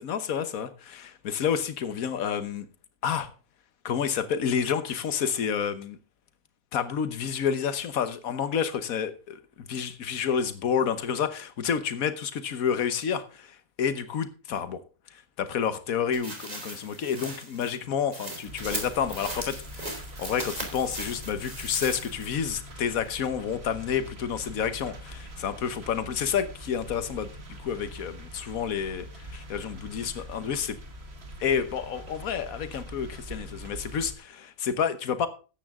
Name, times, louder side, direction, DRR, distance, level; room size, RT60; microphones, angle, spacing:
voice 1, 0.0-2.7 3.0-3.3 3.8-6.0 6.7-9.4 9.7-14.8 15.1-27.3 27.6-30.8 31.4-35.3, left 7 dB, 75° left, 11 dB, 1.5 m, -29 dB
sound 1, 16.1-22.4 22.8-22.9, right 1 dB, 25° right, 3.3 m, -38 dB
sound 2, 18.4-34.1, equal, 45° right, 2.0 m, -43 dB
13.5 x 9.5 x 3.7 m, 0.34 s
omnidirectional pair, 1.5 m